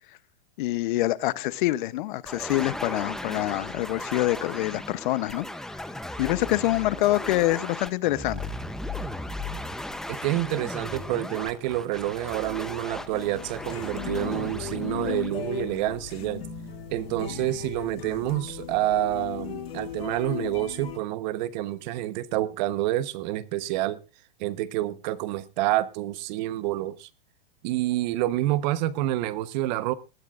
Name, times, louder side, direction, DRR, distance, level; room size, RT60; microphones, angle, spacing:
voice 1, 0.6-5.5 6.2-8.5, left 17 dB, 55° left, 0.8 m, -26 dB
sound 1, 2.3-16.1, left 1 dB, ahead, 0.7 m, -36 dB
voice 2, 10.1-16.4 16.9-24.0 24.4-27.1 27.6-29.9, right 15 dB, 50° right, 1.0 m, -28 dB
sound 2, 13.1-21.0, left 8 dB, 85° left, 2.2 m, -36 dB
20.5 x 13.5 x 2.5 m
supercardioid pair, 140°, 29 cm